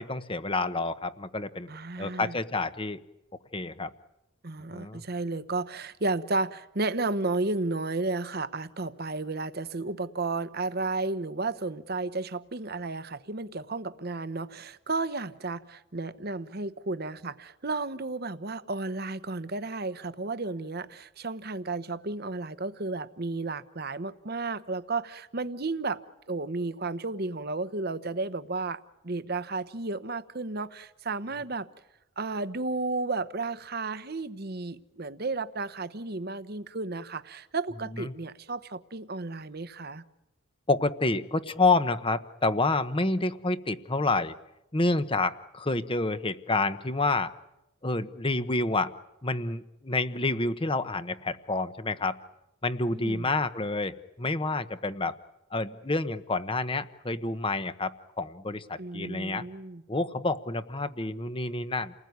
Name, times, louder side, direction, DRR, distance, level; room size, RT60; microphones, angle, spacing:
voice 1, 0.0-1.7 2.0-3.0 3.5-3.9 4.7-5.0 38.0-38.1 40.7-44.3 44.7-47.3 47.8-48.9 49.2-52.2 52.6-55.1 55.5-59.5 59.9-61.9, left 2 dB, 25° left, 1.1 m, -28 dB
voice 2, 1.7-2.4 4.4-26.0 26.3-31.7 32.2-40.0 52.9-53.3 58.8-59.8, right 3 dB, 50° right, 1.0 m, -33 dB
29.5 x 20.0 x 9.6 m
head